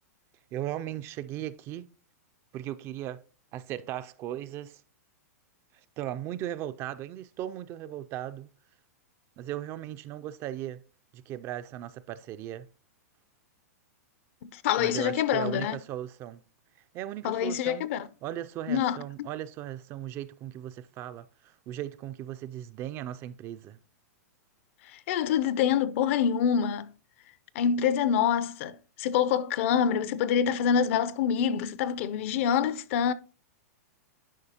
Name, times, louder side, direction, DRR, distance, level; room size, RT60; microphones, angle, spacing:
voice 1, 0.5-1.9 2.5-3.2 3.5-4.8 6.0-8.5 9.4-10.8 11.1-12.7 14.8-16.4 16.9-17.9 18.2-21.3 21.7-23.8, right 12 dB, 30° right, 0.3 m, -37 dB
voice 2, 14.4-15.8 17.2-18.1 18.7-19.3 24.9-26.9 27.5-33.1, left 8 dB, 50° left, 0.5 m, -26 dB
11.0 x 4.7 x 2.8 m
hypercardioid pair, 140°, 9 cm